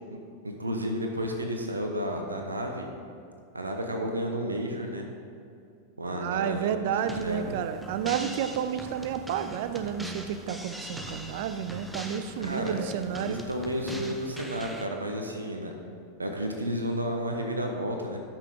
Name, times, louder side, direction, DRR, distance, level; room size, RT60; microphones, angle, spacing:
voice 1, 0.4-2.9 3.5-5.1 6.0-6.7 7.0-7.5 12.4-12.8 13.2-15.7 16.2-18.2, equal, 80° right, 3 dB, 0.9 m, -32 dB
voice 2, 6.1-13.4, right 9 dB, 50° right, 10 dB, 0.5 m, -31 dB
sound 1, 7.1-14.9, equal, 5° right, 0.7 m, -41 dB
12.5 x 6.0 x 3.7 m, 2.5 s
figure-of-eight pair, 90°, 0 cm